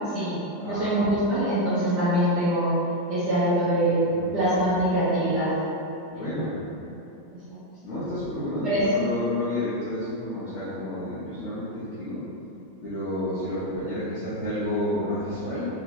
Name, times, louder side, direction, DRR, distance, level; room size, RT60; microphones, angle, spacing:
voice 1, 0.7-2.7 3.1-4.0 4.3-5.5 6.1-6.3 8.6-8.9, right 1 dB, 70° right, -12 dB, 1.3 m, -23 dB
voice 2, 6.1-6.6 7.8-12.2 12.8-15.7, left 1 dB, 50° left, -13 dB, 0.9 m, -30 dB
3.9 x 2.8 x 2.6 m, 2.8 s
omnidirectional pair, 2.1 m